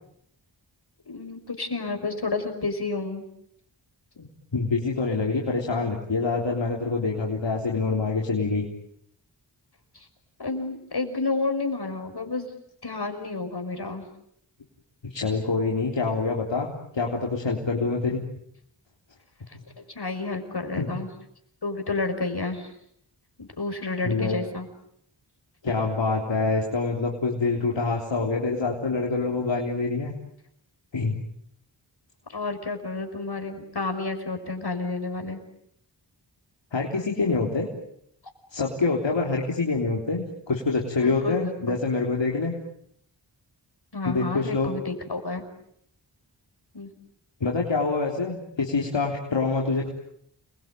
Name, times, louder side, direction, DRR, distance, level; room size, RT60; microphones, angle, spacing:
voice 1, 1.1-3.2 9.9-10.1 10.4-12.5 12.8-14.0 19.8-21.1 21.6-22.7 23.4-24.7 32.3-35.4 41.0-41.8 43.9-45.4 46.7-46.9, left 3 dB, 60° left, 6 dB, 5.6 m, -30 dB
voice 2, 4.2-8.7 15.0-18.2 20.8-20.9 24.0-24.4 25.6-30.1 30.9-31.2 36.7-37.7 38.5-42.6 44.0-44.7 47.4-49.9, left 3 dB, 75° left, -1 dB, 3.7 m, -26 dB
29.5 x 22.0 x 9.2 m, 0.74 s
wide cardioid pair, 70°, 44 cm